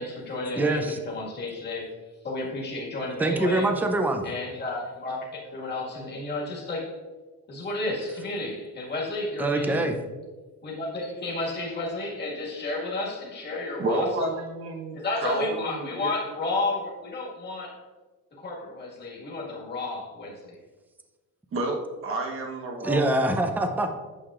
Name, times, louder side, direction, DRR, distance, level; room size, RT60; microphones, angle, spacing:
voice 1, 0.0-1.9 2.2-3.8 4.2-7.0 7.5-9.9 10.6-14.4 14.9-17.8 18.4-20.6, left 2 dB, 30° left, -3 dB, 1.7 m, -32 dB
voice 2, 0.6-1.0 3.2-4.2 9.4-10.0 22.8-23.9, right 2 dB, 5° right, 5 dB, 0.4 m, -24 dB
voice 3, 13.8-16.1 21.5-23.3, right 2 dB, 40° right, 1 dB, 1.0 m, -30 dB
8.9 x 6.5 x 2.4 m, 1.3 s
cardioid pair, 160°, 34 cm